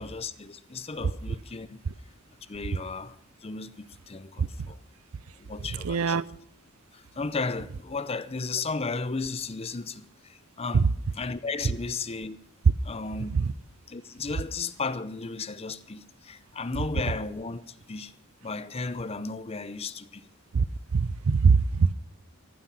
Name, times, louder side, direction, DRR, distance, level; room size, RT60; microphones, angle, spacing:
voice 1, 0.0-1.8 2.5-4.8 5.4-6.2 6.9-10.9 11.1-12.4 12.8-13.5 13.9-18.1 18.4-20.3, left 4 dB, 30° left, 0.6 m, -34 dB
voice 2, 5.8-6.2 10.7-10.9 13.3-13.4 20.5-20.6 20.9-21.9, right 5 dB, 85° right, 0.5 m, -22 dB
15.0 x 11.5 x 6.0 m
head